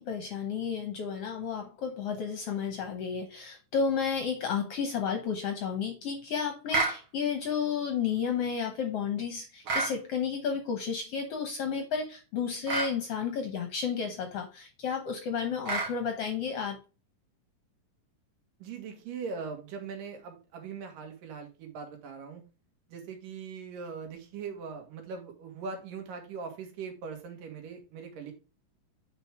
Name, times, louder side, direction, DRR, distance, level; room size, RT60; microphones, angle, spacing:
voice 1, 0.0-16.8, left 6 dB, 65° left, 1.5 m, -32 dB
sound 1, 6.7-7.0 9.6-10.0 12.7-12.9 15.6-15.9, right 3 dB, 50° right, 2.0 m, -28 dB
voice 2, 18.6-22.4 22.9-28.3, right 5 dB, 85° right, 3.3 m, -41 dB
8.8 x 4.6 x 3.5 m
omnidirectional pair, 3.8 m